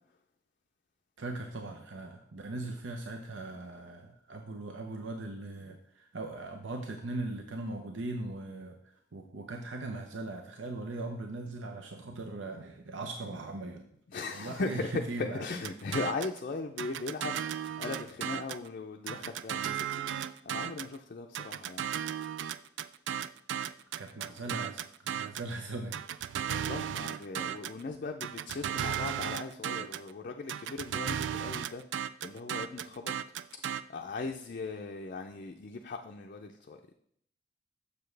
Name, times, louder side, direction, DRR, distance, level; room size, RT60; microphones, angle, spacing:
voice 1, 1.2-8.8 9.1-13.9 14.3-15.5 24.0-26.0, right 2 dB, 85° right, 3 dB, 0.7 m, -39 dB
voice 2, 14.1-14.9 15.2-20.2 20.4-21.9 26.4-31.8 32.2-33.1 33.9-36.9, left 3 dB, 45° left, 3 dB, 0.4 m, -39 dB
sound 1, 15.6-16.4 16.8-18.7 19.1-21.0 21.3-25.5 25.9-27.8 28.2-30.1 30.5-33.8, right 9 dB, 70° right, 0.3 m, -35 dB
7.0 x 6.7 x 3.3 m, 0.68 s
head